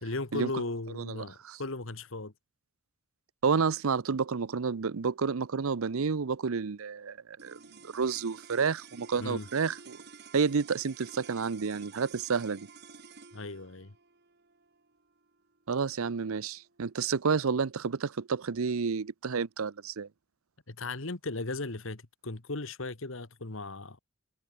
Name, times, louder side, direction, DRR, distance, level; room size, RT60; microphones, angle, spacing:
voice 1, 0.0-2.3 9.2-9.5 13.3-13.9 20.7-24.0, left 2 dB, 60° left, 1.6 m, -37 dB
voice 2, 1.0-1.6 3.4-7.2 7.4-7.6 7.9-10.0 10.3-12.7 15.7-20.1, right 5 dB, 75° right, 0.6 m, -30 dB
sound 1, 7.4-17.8, right 5 dB, 50° right, 2.2 m, -52 dB
head